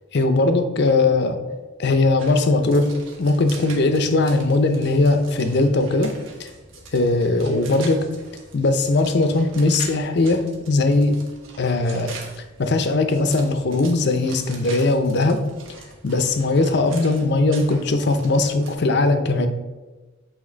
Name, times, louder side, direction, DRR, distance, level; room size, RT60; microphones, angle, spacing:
voice 1, 0.1-1.4 1.8-2.9 3.2-6.1 6.4-6.5 6.9-8.1 8.5-11.2 11.6-12.1 12.6-15.4 16.0-19.5, left 2 dB, 60° left, 8 dB, 0.6 m, -19 dB
sound 1, 2.2-18.7, right 4 dB, 80° right, 1.2 m, -43 dB
8.5 x 2.9 x 3.9 m, 1.2 s
head